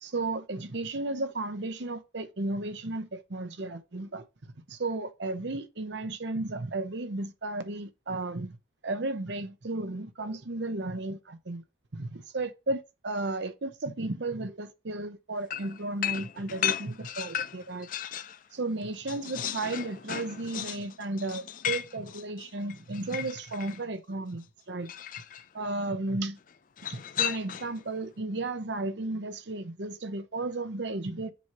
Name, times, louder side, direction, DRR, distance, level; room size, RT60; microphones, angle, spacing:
voice 1, 0.0-4.2 4.7-8.6 8.8-11.6 11.9-17.9 18.5-24.9 25.5-26.4 26.8-31.3, right 2 dB, 65° right, 0.8 m, -34 dB
sound 1, 15.5-18.4 18.8-23.8 24.9-25.5 26.8-27.8, left 10 dB, 45° left, 0.4 m, -35 dB
7.0 x 3.1 x 6.0 m
head